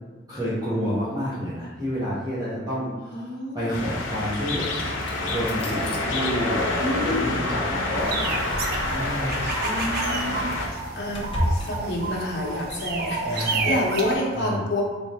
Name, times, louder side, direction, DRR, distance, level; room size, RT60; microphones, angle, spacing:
voice 1, 0.3-4.8 5.2-8.4 8.9-9.4 13.2-13.8 14.3-14.6, equal, 20° right, -11 dB, 1.0 m, -29 dB
voice 2, 3.1-3.8 6.8-7.5 9.6-14.8, left 1 dB, 60° left, -2 dB, 0.9 m, -29 dB
sound 1, 3.7-10.7, left 2 dB, 85° left, 0.7 m, -28 dB
sound 2, 4.8-6.0 8.0-9.1 9.7-9.9 10.3-11.7, equal, 30° left, 0.6 m, -31 dB
sound 3, 8.0-14.1, right 3 dB, 55° right, 0.4 m, -30 dB
4.0 x 3.4 x 2.8 m, 1.3 s
head